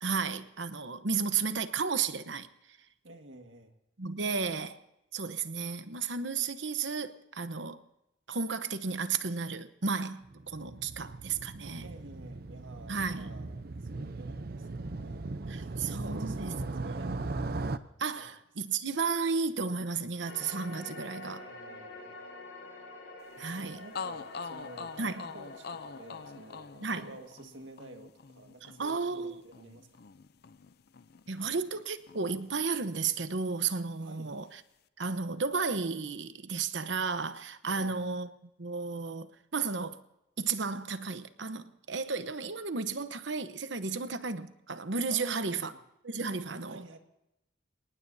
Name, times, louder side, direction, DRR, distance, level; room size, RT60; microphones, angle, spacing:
voice 1, 0.0-2.5 4.0-4.8 5.1-7.8 8.3-11.9 12.9-13.3 15.5-16.5 17.0-17.2 18.0-21.4 23.4-23.8 25.0-25.2 26.8-27.0 28.8-29.4 31.3-34.5 35.0-38.3 38.6-40.0 40.4-45.7 46.0-47.0, right 5 dB, 70° right, 1.0 m, -33 dB
voice 2, 3.0-3.7 11.8-17.2 18.1-18.4 18.7-18.8 21.2-22.2 23.5-29.9 34.0-34.3 37.6-38.1 45.1-45.8 46.7-47.0, right 2 dB, 85° right, 1.8 m, -50 dB
Motorcycle, 10.2-17.8, right 3 dB, 55° right, 0.6 m, -38 dB
sound 1, 20.2-26.7, left 2 dB, 80° left, 7.2 m, -47 dB
sound 2, 23.5-23.6 23.9-31.8 32.1-33.2, left 5 dB, 55° left, 0.5 m, -45 dB
28.0 x 18.5 x 2.8 m
head